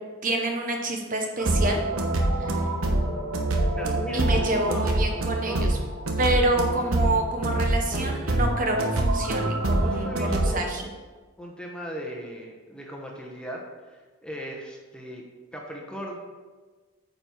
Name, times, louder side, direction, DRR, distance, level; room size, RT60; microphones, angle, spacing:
voice 1, 0.2-1.8 2.3-2.7 4.1-5.8 6.2-10.8, right 2 dB, 40° right, 2 dB, 0.9 m, -27 dB
sound 1, 1.4-10.5, right 1 dB, 85° right, 1.1 m, -25 dB
voice 2, 3.8-4.9 5.5-5.7 7.9-8.1 9.8-10.6 11.4-15.2 15.5-16.2, equal, 5° left, -1 dB, 1.0 m, -37 dB
9.0 x 5.4 x 4.6 m, 1.4 s
head